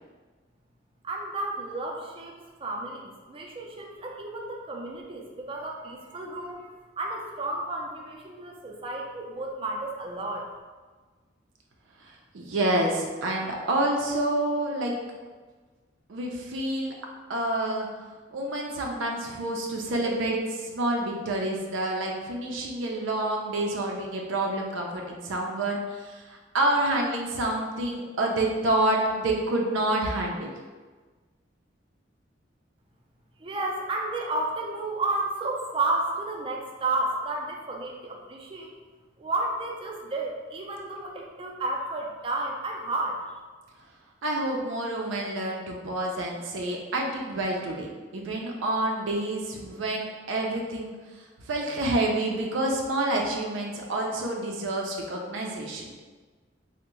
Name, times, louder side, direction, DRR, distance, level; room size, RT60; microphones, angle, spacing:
voice 1, 1.0-2.3 2.6-10.4 33.4-38.7 39.2-43.2, right 2 dB, 30° right, 0 dB, 0.4 m, -32 dB
voice 2, 12.3-14.9 16.1-16.9 17.3-17.9 18.3-30.5 44.2-50.9 51.4-55.9, right 1 dB, 90° right, 0 dB, 0.5 m, -28 dB
3.4 x 2.1 x 3.0 m, 1.4 s
head